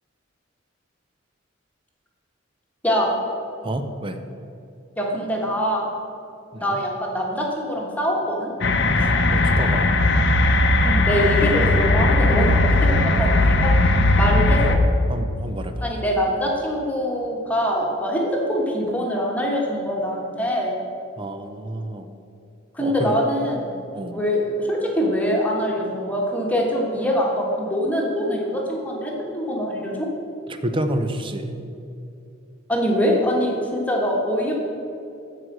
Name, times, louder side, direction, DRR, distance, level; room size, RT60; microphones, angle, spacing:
voice 1, 3.6-4.2 6.5-6.8 9.0-9.9 14.3-14.6 15.1-15.7 21.2-22.2 22.8-23.1 23.9-24.2 30.6-31.6, right 1 dB, 25° right, 7 dB, 0.6 m, -29 dB
voice 2, 5.0-5.9 6.6-8.5 10.8-13.7 14.1-14.8 15.8-20.7 22.7-23.7 24.1-30.1 32.7-34.5, equal, 10° left, -2 dB, 1.4 m, -23 dB
sound 1, 8.6-14.8, left 2 dB, 60° left, 0.8 m, -18 dB
14.5 x 4.9 x 6.1 m, 2.7 s
head